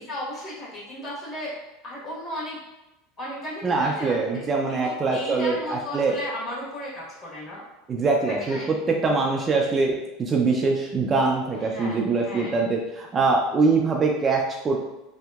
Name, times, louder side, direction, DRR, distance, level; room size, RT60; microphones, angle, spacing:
voice 1, 0.1-1.5 1.8-2.6 3.2-7.6 8.3-8.7 11.6-12.6, left 1 dB, 35° left, -6 dB, 1.2 m, -35 dB
voice 2, 3.6-6.2 7.9-14.8, right 3 dB, 25° right, 0 dB, 0.3 m, -23 dB
2.8 x 2.6 x 2.3 m, 0.95 s
supercardioid pair, 130°, 0 cm